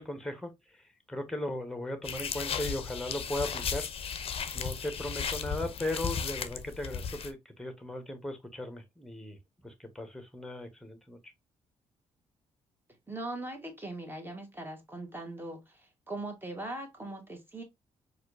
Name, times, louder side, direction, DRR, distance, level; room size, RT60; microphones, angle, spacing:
voice 1, 0.0-3.9 4.5-9.4 9.6-11.3, left 1 dB, 5° left, 1.1 m, -37 dB
sound 1, 2.0-7.3, left 7 dB, 50° left, 0.5 m, -35 dB
voice 2, 13.1-17.6, right 2 dB, 15° right, 1.4 m, -40 dB
4.2 x 2.5 x 2.6 m
supercardioid pair, 60°, 12 cm